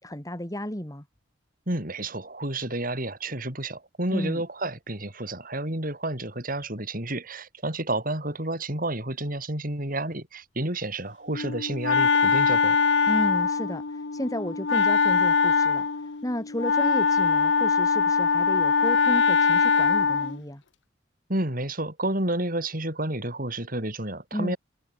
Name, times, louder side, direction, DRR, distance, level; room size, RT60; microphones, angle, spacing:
voice 1, 0.0-1.0 4.1-4.4 13.1-20.6 24.3-24.5, equal, 20° left, 3.3 m, -33 dB
voice 2, 1.7-12.8 21.3-24.6, right 1 dB, 45° right, 6.5 m, -30 dB
Wind instrument woodwind instrument, 11.3-20.4, left 5 dB, 70° left, 0.9 m, -22 dB
head